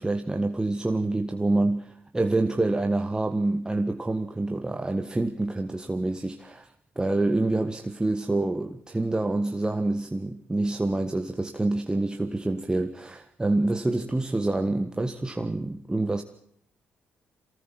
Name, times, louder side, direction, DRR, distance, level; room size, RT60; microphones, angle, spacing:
voice 1, 0.0-16.2, right 2 dB, 15° right, 1.6 m, -27 dB
23.5 x 18.0 x 7.4 m
supercardioid pair, 55°, 5 cm